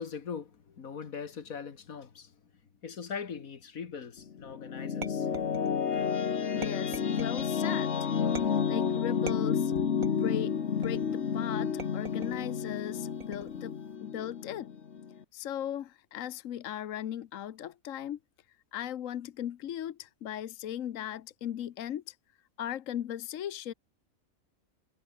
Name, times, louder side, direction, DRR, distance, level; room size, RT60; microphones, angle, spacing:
voice 1, 0.0-2.3 2.8-5.5, left 6 dB, 90° left, 2.1 m, -41 dB
sound 1, 4.2-15.2, left 7 dB, 55° left, 1.5 m, -31 dB
sound 2, 5.0-6.0 6.6-7.5 8.4-8.8 9.3-10.3 10.8-11.2 11.8-12.5 13.2-13.7, right 4 dB, 85° right, 2.9 m, -43 dB
voice 2, 6.5-8.1 8.7-9.7 10.2-14.7 15.3-18.2 18.7-22.2 22.6-23.7, left 11 dB, 70° left, 1.2 m, -38 dB
omnidirectional pair, 1.4 m